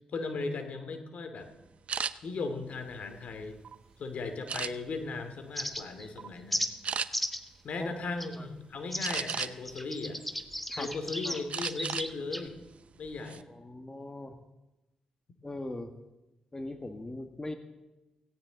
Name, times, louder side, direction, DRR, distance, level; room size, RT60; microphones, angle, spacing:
voice 1, 0.1-1.5 2.2-3.6 4.0-6.7 7.6-10.2 10.7-12.6 13.0-13.5, left 3 dB, 65° left, 7 dB, 2.5 m, -37 dB
sound 1, 1.9-2.1 2.8-3.7 4.5-5.1 5.6-5.8 6.2-6.3 6.8-7.1 9.0-9.7 10.2-11.0 11.5-12.1 12.4-12.6 13.0-13.4, right 6 dB, 55° right, 0.7 m, -35 dB
sound 2, 5.5-6.1 6.5-6.7 7.1-7.5 8.2-8.4 8.9-12.5, equal, 5° left, 1.6 m, -35 dB
voice 2, 13.5-14.4 15.4-15.9 16.5-17.6, left 2 dB, 25° left, 6 dB, 1.7 m, -40 dB
17.5 x 17.0 x 4.0 m, 1.0 s
supercardioid pair, 45°, 2 cm